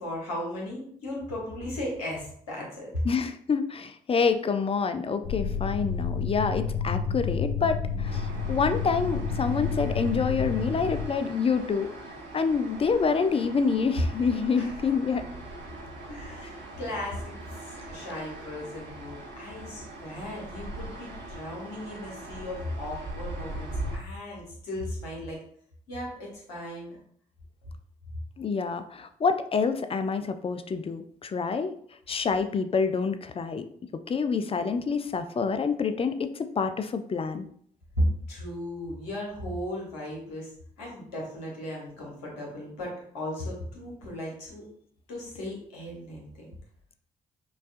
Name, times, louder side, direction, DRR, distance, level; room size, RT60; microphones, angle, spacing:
voice 1, 0.0-3.0 14.6-14.8 16.1-25.4 25.9-26.9 38.0-40.5 40.8-44.6 45.1-46.5, left 1 dB, 85° left, -3 dB, 1.1 m, -36 dB
voice 2, 3.1-11.9 12.3-15.2 28.4-31.7 32.1-33.7 34.1-37.5, left 5 dB, 30° left, 9 dB, 0.4 m, -27 dB
sound 1, 5.2-11.1, left 5 dB, 45° left, 1.3 m, -30 dB
sound 2, 8.0-24.0, right 2 dB, 65° right, 1.0 m, -41 dB
5.3 x 2.3 x 2.5 m, 0.63 s
hypercardioid pair, 40°, 20 cm